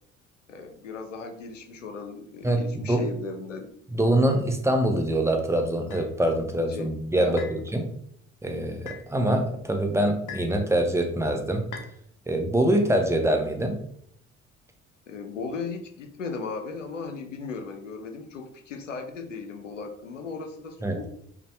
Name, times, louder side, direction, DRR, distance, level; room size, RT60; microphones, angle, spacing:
voice 1, 0.5-3.7 6.7-6.9 7.2-7.7 15.1-21.1, left 4 dB, 90° left, 6 dB, 0.5 m, -37 dB
voice 2, 2.4-3.0 3.9-7.9 8.4-11.7 12.3-13.8 20.8-21.0, right 1 dB, 10° right, 4 dB, 0.7 m, -24 dB
sound 1, 5.9-6.1 7.4-7.6 8.9-9.1 10.3-10.6 11.7-11.9, left 6 dB, 55° left, 0.8 m, -40 dB
5.2 x 2.1 x 3.1 m, 0.65 s
figure-of-eight pair, 50°, 36 cm